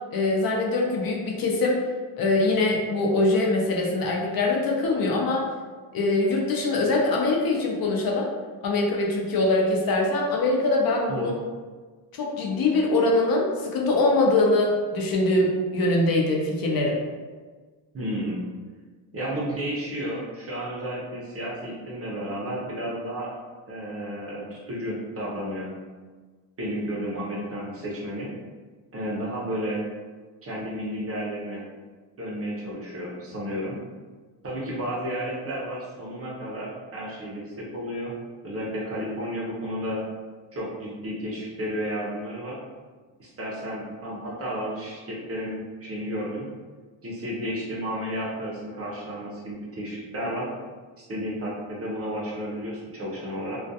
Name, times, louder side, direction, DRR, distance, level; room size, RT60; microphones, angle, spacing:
voice 1, 0.1-1.8 2.2-5.4 5.9-8.3 8.6-11.3 12.1-17.0, left 2 dB, 50° left, -1 dB, 0.5 m, -23 dB
voice 2, 17.9-18.4 19.1-23.3 23.7-25.7 26.6-28.3 28.9-29.8 30.4-31.6 32.2-33.8 34.4-38.1 38.4-40.0 40.5-42.6 43.2-46.5 47.0-50.5 51.0-53.6, equal, 35° right, -5 dB, 0.5 m, -32 dB
2.3 x 2.2 x 2.6 m, 1.4 s
cardioid pair, 135°, 45 cm